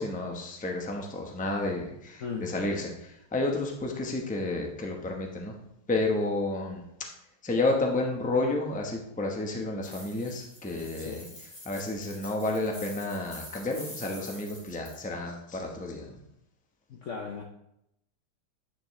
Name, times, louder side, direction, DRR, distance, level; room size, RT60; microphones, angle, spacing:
voice 1, 0.0-5.5 5.9-6.8 7.4-11.2 11.6-16.1, left 2 dB, 10° left, 1 dB, 0.4 m, -31 dB
voice 2, 2.2-2.6 11.0-11.3 16.9-17.4, left 5 dB, 90° left, 1 dB, 0.6 m, -37 dB
sound 1, 9.8-15.0, left 1 dB, 35° left, 2.9 m, -46 dB
9.7 x 6.2 x 3.2 m, 0.80 s
omnidirectional pair, 2.3 m